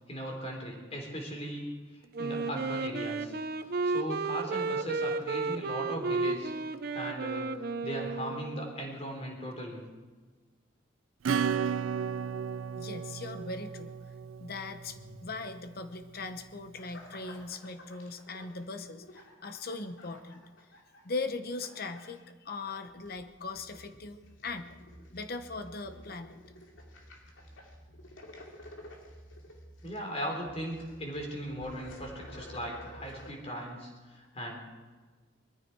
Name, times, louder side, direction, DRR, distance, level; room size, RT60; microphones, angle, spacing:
voice 1, 0.1-1.6 2.2-3.3 3.8-6.5 6.9-7.5 7.8-9.8 29.8-34.6, equal, 30° left, 1 dB, 3.7 m, -38 dB
Wind instrument woodwind instrument, 2.1-8.8, right 3 dB, 50° right, 0.7 m, -33 dB
Acoustic guitar / Strum, 11.2-15.5, right 7 dB, 90° right, 0.4 m, -34 dB
voice 2, 12.8-13.9 14.4-20.4 21.0-24.8 25.1-26.4, left 3 dB, 50° left, 9 dB, 1.0 m, -39 dB
sound 1, 16.8-21.2 21.5-22.2 22.5-33.3, left 1 dB, 80° left, 2.7 m, -51 dB
21.0 x 14.5 x 4.7 m, 1.4 s
head